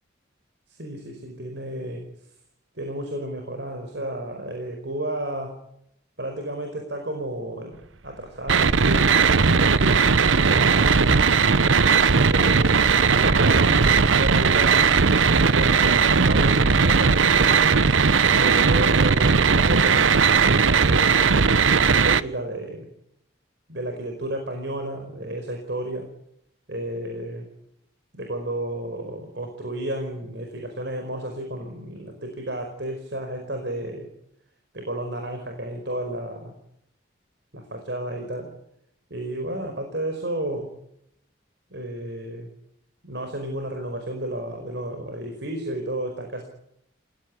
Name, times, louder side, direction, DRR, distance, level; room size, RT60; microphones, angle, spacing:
voice 1, 0.7-2.0 2.8-5.6 6.2-7.8 8.0-11.6 12.2-15.0 15.4-17.7 18.1-20.2 20.8-22.9 23.7-26.1 26.7-27.5 28.1-34.1 34.7-36.5 37.5-38.5 39.1-40.7 41.7-42.5 43.0-46.4, right 1 dB, 60° right, 4 dB, 5.1 m, -32 dB
sound 1, 8.5-22.2, right 5 dB, 80° right, 0.9 m, -18 dB
28.5 x 17.0 x 9.9 m, 0.77 s
head